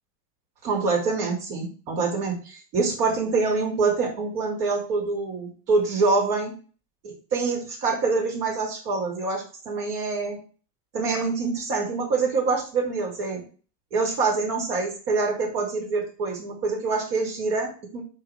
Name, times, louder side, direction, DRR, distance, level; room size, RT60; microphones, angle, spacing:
voice 1, 0.6-6.5 7.0-10.4 10.9-13.4 13.9-18.0, right 4 dB, 80° right, -1 dB, 3.1 m, -25 dB
5.1 x 4.5 x 4.9 m, 0.38 s
hypercardioid pair, 75°, 46 cm